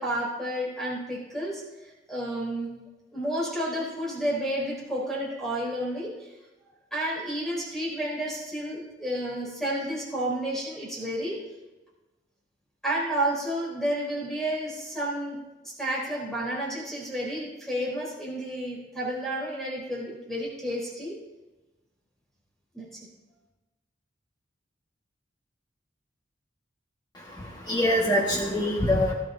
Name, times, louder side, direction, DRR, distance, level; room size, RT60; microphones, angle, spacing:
voice 1, 0.0-2.7 3.1-6.3 6.9-11.4 12.8-15.4 15.6-21.2 22.7-23.1, right 1 dB, ahead, -6 dB, 3.8 m, -31 dB
voice 2, 27.1-29.1, left 1 dB, 20° left, -3 dB, 1.7 m, -25 dB
19.0 x 12.0 x 2.8 m, 1.1 s
head